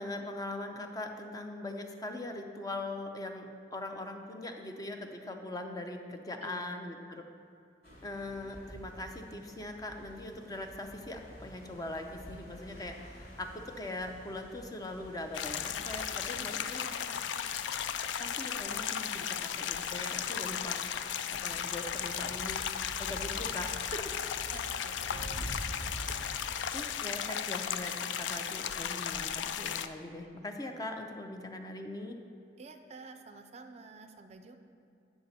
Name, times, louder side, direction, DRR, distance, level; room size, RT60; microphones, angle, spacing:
voice 1, 0.0-7.2 8.0-16.8 18.2-20.8 21.3-22.7 23.0-24.1 26.7-32.2, left 2 dB, 20° left, 4 dB, 0.5 m, -41 dB
voice 2, 6.4-6.8 16.3-17.3 24.5-25.7 32.6-34.6, right 3 dB, 35° right, 7 dB, 0.4 m, -51 dB
sound 1, 7.8-26.6, equal, 55° left, 1.5 m, -48 dB
sound 2, 15.3-29.9, left 8 dB, 80° left, 0.3 m, -35 dB
9.1 x 5.8 x 4.1 m, 2.6 s
head